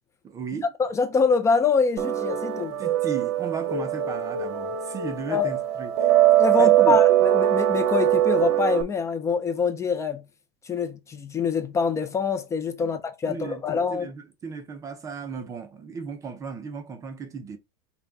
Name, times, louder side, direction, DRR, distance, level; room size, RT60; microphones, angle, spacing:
voice 1, 0.2-0.7 2.8-6.2 6.6-7.0 12.8-12.9 13.2-17.6, right 5 dB, 20° right, 0.7 m, -35 dB
voice 2, 0.8-2.8 5.3-5.5 6.4-7.1 7.3-10.2 10.6-14.1, left 5 dB, 20° left, 0.6 m, -25 dB
sound 1, 2.0-8.8, right 12 dB, 65° right, 0.9 m, -22 dB
5.6 x 2.3 x 4.1 m
supercardioid pair, 150°, 15 cm